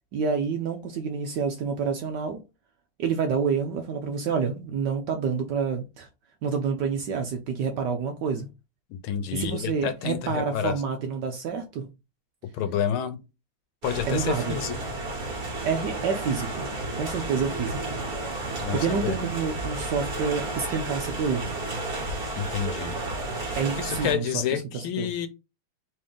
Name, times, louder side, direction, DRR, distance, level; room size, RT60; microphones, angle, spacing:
voice 1, 0.1-2.4 3.0-6.1 6.4-8.5 9.3-11.9 14.0-14.6 15.6-16.7 16.9-17.9 18.7-21.4 23.5-25.1, right 6 dB, 70° right, 1.0 m, -28 dB
voice 2, 8.9-10.7 12.5-13.2 13.8-14.8 18.6-19.2 22.4-22.9 23.4-25.3, left 9 dB, 80° left, 1.5 m, -29 dB
sound 1, 13.8-24.1, right 2 dB, 45° right, 2.0 m, -32 dB
4.3 x 3.0 x 3.6 m
omnidirectional pair, 2.4 m